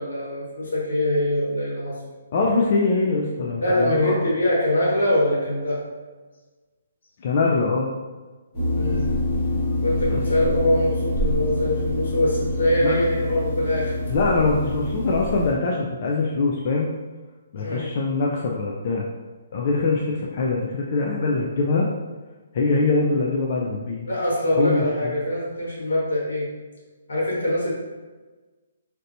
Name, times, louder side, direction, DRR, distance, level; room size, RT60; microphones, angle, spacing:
voice 1, 0.0-2.0 3.6-5.8 8.8-9.1 9.8-13.9 17.6-17.9 24.1-26.5 27.1-27.7, left 1 dB, 80° left, -5 dB, 1.4 m, -23 dB
voice 2, 2.3-4.3 7.2-7.9 10.1-10.2 12.8-13.0 14.1-16.9 17.5-19.0 19.5-21.9 22.5-24.1 24.5-25.1, left 3 dB, 35° left, -2 dB, 0.3 m, -23 dB
sound 1, 8.5-15.5, left 1 dB, 15° left, 1.4 m, -26 dB
3.2 x 2.8 x 2.6 m, 1.3 s
hypercardioid pair, 175°, 0 cm